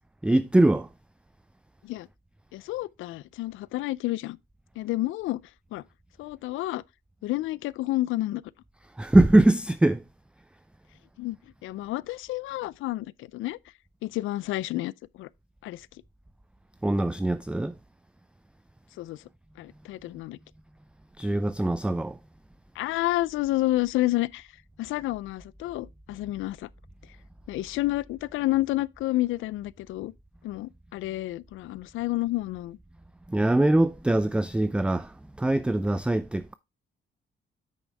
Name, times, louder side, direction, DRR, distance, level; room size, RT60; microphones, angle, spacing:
voice 1, 0.2-0.9 9.0-10.0 16.8-17.7 21.2-22.2 33.3-36.5, right 1 dB, 5° right, 0.4 m, -22 dB
voice 2, 2.5-4.4 4.8-5.4 5.7-5.8 6.2-6.8 7.2-8.4 11.2-11.4 11.6-13.6 14.0-14.9 15.2-15.3 15.6-15.9 19.0-19.2 19.6-20.4 22.8-24.5 24.8-26.7 27.5-30.1 30.4-32.8, left 17 dB, 80° left, 0.4 m, -30 dB
8.5 x 6.2 x 3.3 m
cardioid pair, 90°, 20 cm